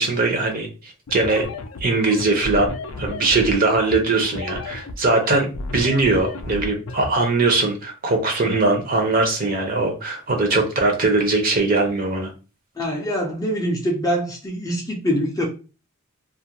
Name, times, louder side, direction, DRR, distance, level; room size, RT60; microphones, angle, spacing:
voice 1, 0.0-1.4 1.8-12.3, right 3 dB, 40° right, 3 dB, 0.6 m, -21 dB
sound 1, 1.1-7.1, left 3 dB, 75° left, 0.4 m, -32 dB
voice 2, 12.8-15.5, equal, 15° left, 0 dB, 0.4 m, -24 dB
2.4 x 2.1 x 2.8 m, 0.33 s
head